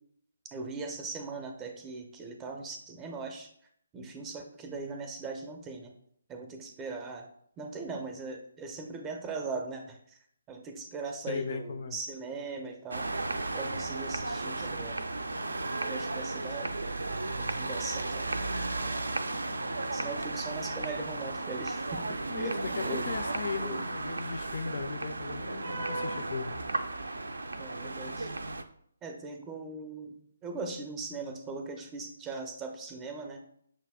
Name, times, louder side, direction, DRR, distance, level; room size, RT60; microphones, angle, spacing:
voice 1, 0.5-3.5 3.9-5.9 6.3-7.3 7.6-10.2 10.5-13.1 13.5-14.9 15.8-16.7 17.5-18.5 19.9-22.1 22.4-23.1 23.6-23.8 27.6-28.3 29.0-30.1 30.4-33.4, right 3 dB, 15° right, 3 dB, 0.5 m, -39 dB
voice 2, 11.3-12.0 22.3-26.6, left 5 dB, 45° left, 8 dB, 0.3 m, -37 dB
sound 1, 12.9-28.6, right 2 dB, 70° right, 0.3 m, -34 dB
6.0 x 2.2 x 3.4 m, 0.67 s
figure-of-eight pair, 140°, 0 cm